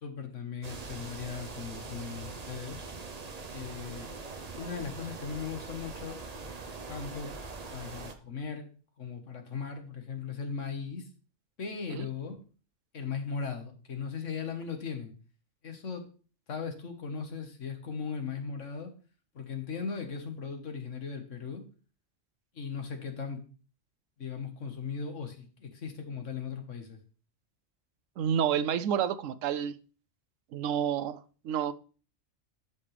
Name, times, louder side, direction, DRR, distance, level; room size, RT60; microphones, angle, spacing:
voice 1, 0.0-2.8 3.5-4.1 4.6-6.2 6.9-7.3 7.7-8.7 9.0-11.1 11.6-12.4 12.9-15.1 15.6-16.1 16.5-18.9 19.3-21.6 22.5-23.4 24.2-27.0, left 5 dB, 80° left, 1.7 m, -38 dB
sound 1, 0.6-8.1, right 4 dB, 35° right, 0.9 m, -42 dB
voice 2, 28.2-29.8 30.5-31.7, right 9 dB, 85° right, 1.0 m, -29 dB
12.5 x 5.5 x 3.3 m
omnidirectional pair, 1.3 m